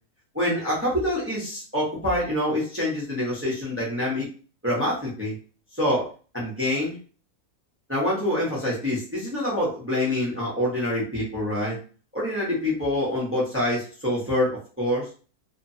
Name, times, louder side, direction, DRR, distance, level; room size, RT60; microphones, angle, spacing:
voice 1, 0.3-4.3 4.6-5.4 5.7-6.1 6.3-7.0 7.9-11.8 12.1-15.1, left 1 dB, 10° right, -5 dB, 0.8 m, -26 dB
2.9 x 2.3 x 2.7 m, 0.37 s
omnidirectional pair, 1.6 m